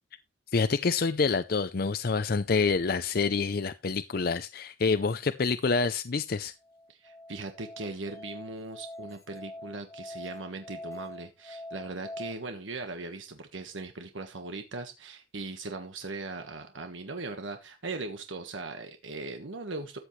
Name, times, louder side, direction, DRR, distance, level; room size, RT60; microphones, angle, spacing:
voice 1, 0.5-6.5, left 4 dB, 50° left, 0.5 m, -27 dB
Musical instrument, 6.6-12.3, left 1 dB, 15° left, 1.3 m, -44 dB
voice 2, 6.9-20.0, right 3 dB, 80° right, 1.4 m, -39 dB
14.0 x 8.1 x 3.2 m
head